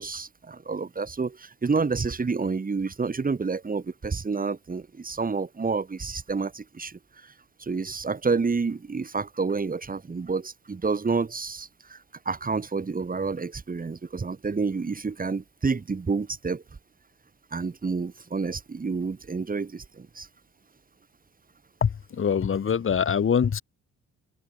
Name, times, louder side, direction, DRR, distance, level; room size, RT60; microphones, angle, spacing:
voice 1, 0.0-7.3 7.6-12.0 12.2-16.6 17.5-20.3, right 4 dB, 30° right, 3.1 m, -29 dB
voice 2, 22.2-23.6, left 7 dB, 45° left, 2.5 m, -23 dB
cardioid pair, 90°, 30 cm